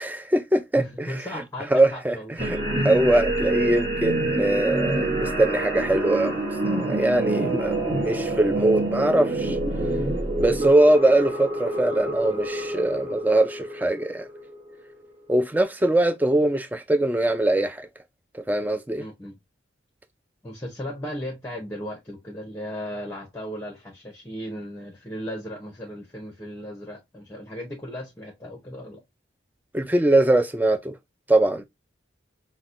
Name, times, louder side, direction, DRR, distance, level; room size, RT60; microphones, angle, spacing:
voice 1, 0.0-1.4 1.7-2.2 2.4-2.6 2.8-9.6 10.4-14.3 15.3-17.9 18.3-19.0 29.7-31.0 31.3-31.6, right 1 dB, 10° right, 0.3 m, -22 dB
voice 2, 0.8-2.5 10.6-10.8 19.0-19.4 20.4-29.0, equal, 15° left, 0.7 m, -36 dB
sound 1, 2.4-15.1, right 2 dB, 35° right, 1.2 m, -27 dB
5.7 x 2.1 x 2.5 m
head